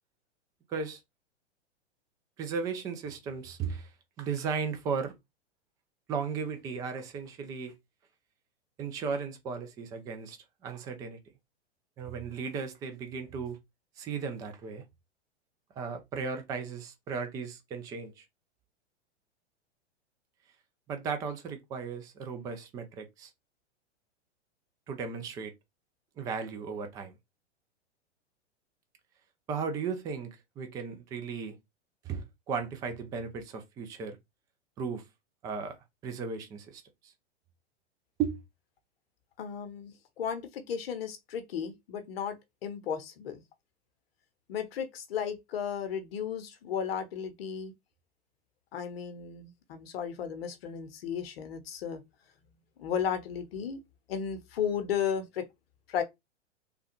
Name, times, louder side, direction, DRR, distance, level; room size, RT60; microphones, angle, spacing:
voice 1, 0.7-1.0 2.4-3.9 4.2-5.1 6.1-7.7 8.8-10.4 10.6-11.2 12.0-13.6 14.0-14.8 15.8-18.2 20.9-23.3 24.9-25.5 26.2-27.1 29.5-31.6 32.0-34.2 34.8-35.1 35.4-37.1 38.2-38.4, right 5 dB, 10° right, 0.3 m, -36 dB
voice 2, 39.4-42.4 42.6-43.4 44.5-47.7 48.7-52.0 52.8-53.8 54.1-55.5 55.9-56.0, left 8 dB, 55° left, 0.8 m, -34 dB
3.3 x 2.2 x 2.9 m
figure-of-eight pair, 105°, 35 cm